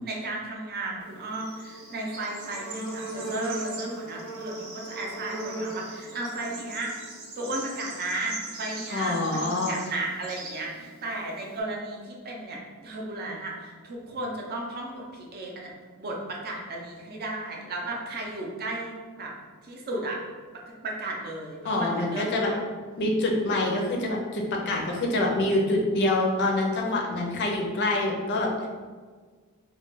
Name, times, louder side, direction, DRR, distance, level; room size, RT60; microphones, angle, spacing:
voice 1, 0.0-6.9 7.4-15.7 16.0-19.3 19.6-20.2 20.8-22.6, right 2 dB, 45° right, -1 dB, 0.5 m, -34 dB
Bird / Insect, 1.0-11.6, right 2 dB, 75° right, 0.7 m, -38 dB
voice 2, 8.9-9.8 21.6-22.5 23.0-28.7, left 2 dB, 55° left, 0 dB, 0.5 m, -26 dB
2.3 x 2.2 x 3.8 m, 1.5 s
head